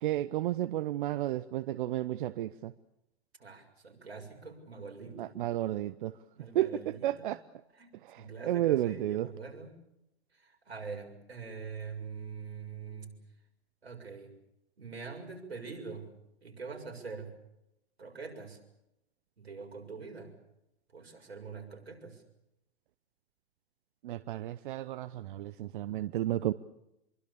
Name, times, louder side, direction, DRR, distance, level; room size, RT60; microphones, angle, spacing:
voice 1, 0.0-2.7 5.2-6.1 6.5-7.4 8.1-9.3 24.0-26.5, right 13 dB, 55° right, 15 dB, 0.9 m, -32 dB
voice 2, 3.4-5.3 6.3-7.4 7.7-9.8 10.3-13.2 13.8-14.3 14.8-16.1 16.4-17.4 18.0-18.6 19.4-20.3 20.9-22.2, right 5 dB, 85° right, 3 dB, 6.9 m, -44 dB
26.5 x 23.5 x 7.0 m, 0.85 s
hypercardioid pair, 120°, 31 cm